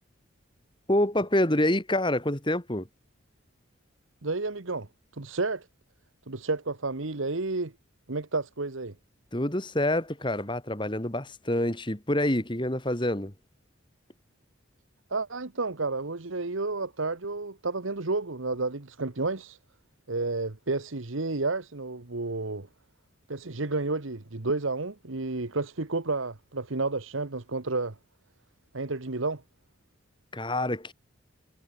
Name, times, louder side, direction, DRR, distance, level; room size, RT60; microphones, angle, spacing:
voice 1, 0.9-2.9 9.3-13.3 30.3-30.9, left 1 dB, 25° left, 2.4 m, -27 dB
voice 2, 4.2-4.9 5.1-5.7 6.3-7.7 8.1-8.9 15.1-19.6 20.1-22.7 23.3-27.9 28.7-29.4, right 3 dB, 75° right, 1.4 m, -31 dB
head